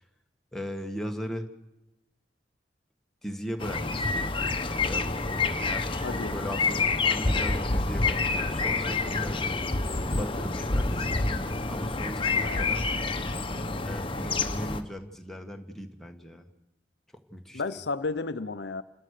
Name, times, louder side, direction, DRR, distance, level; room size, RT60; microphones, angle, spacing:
voice 1, 0.5-1.5 3.2-9.5 10.2-11.3 11.7-12.9 13.8-16.5 17.1-17.6, equal, ahead, 1.7 m, -38 dB
sound 1, 3.6-14.8, left 3 dB, 30° left, 1.2 m, -28 dB
voice 2, 6.0-6.4 12.4-12.8 17.5-18.8, left 3 dB, 70° left, 0.7 m, -33 dB
30.0 x 13.0 x 6.6 m
head